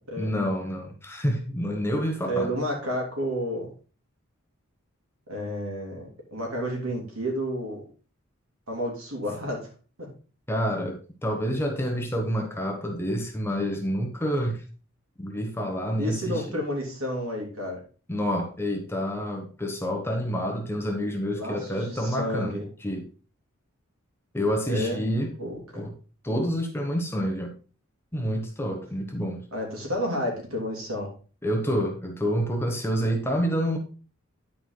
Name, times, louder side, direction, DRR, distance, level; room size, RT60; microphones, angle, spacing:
voice 1, 0.2-2.5 10.5-14.6 15.2-16.4 18.1-23.1 24.3-25.3 25.7-25.9 26.2-27.5 28.1-29.4 31.4-33.8, equal, 10° left, 2 dB, 1.1 m, -28 dB
voice 2, 2.2-3.7 5.3-7.8 8.7-9.7 10.0-10.1 16.0-17.8 21.3-22.7 24.7-25.0 25.4-25.8 29.5-31.1, equal, 80° right, 0 dB, 3.0 m, -31 dB
10.0 x 4.7 x 3.9 m, 0.37 s
head